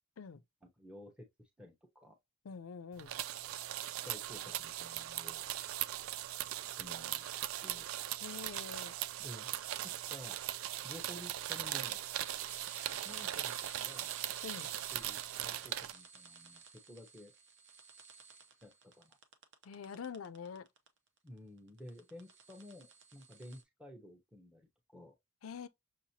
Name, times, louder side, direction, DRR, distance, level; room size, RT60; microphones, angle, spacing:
voice 1, 0.6-1.3 1.6-2.1 4.0-5.4 6.8-7.2 7.6-7.9 9.2-9.5 9.8-10.3 10.8-12.0 13.0-14.1 14.9-17.3 18.6-19.2 21.2-25.1, left 1 dB, 5° right, 0.9 m, -52 dB
voice 2, 2.4-3.1 8.2-8.9 14.4-14.7 19.6-20.7 25.4-25.7, left 6 dB, 80° left, 0.5 m, -45 dB
sound 1, 3.0-15.9, right 13 dB, 80° right, 0.3 m, -39 dB
sound 2, 10.0-20.9 21.2-23.6, right 5 dB, 60° right, 0.7 m, -55 dB
6.3 x 2.8 x 2.8 m
head